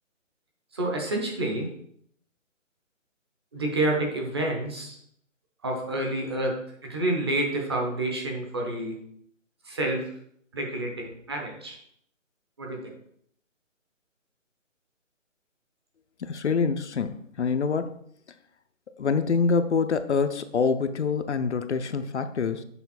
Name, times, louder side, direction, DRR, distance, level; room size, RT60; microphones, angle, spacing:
voice 1, 0.7-1.7 3.5-5.0 5.6-6.6 6.8-9.0 9.7-10.0 10.5-11.8 12.6-12.9, right 1 dB, 20° right, 0 dB, 0.8 m, -28 dB
voice 2, 16.2-18.0 19.0-22.6, left 5 dB, 60° left, 9 dB, 0.6 m, -26 dB
7.0 x 5.3 x 4.2 m, 0.67 s
hypercardioid pair, 165°, 39 cm